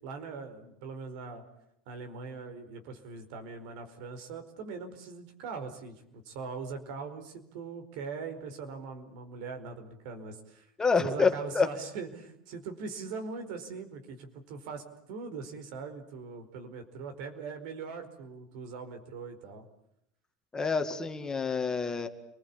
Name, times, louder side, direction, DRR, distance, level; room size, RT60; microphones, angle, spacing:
voice 1, 0.0-1.4 1.9-10.7 11.0-19.7, right 5 dB, 75° right, 7 dB, 4.7 m, -41 dB
voice 2, 10.8-11.7 20.5-22.1, left 4 dB, 15° left, 6 dB, 2.1 m, -27 dB
29.0 x 20.5 x 8.7 m, 0.79 s
supercardioid pair, 130°, 4 cm